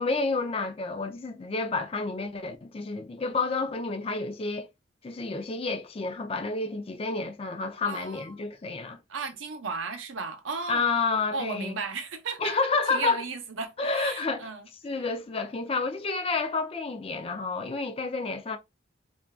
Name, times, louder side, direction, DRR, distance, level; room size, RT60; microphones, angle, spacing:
voice 1, 0.0-4.7 5.0-9.0 10.7-11.8 12.4-13.2 13.8-14.5 14.8-18.6, left 3 dB, 30° left, 0.4 m, -30 dB
voice 2, 7.8-8.4 9.1-10.8 11.3-12.6 12.9-14.7, right 4 dB, 80° right, 0.7 m, -35 dB
2.5 x 2.3 x 3.4 m
head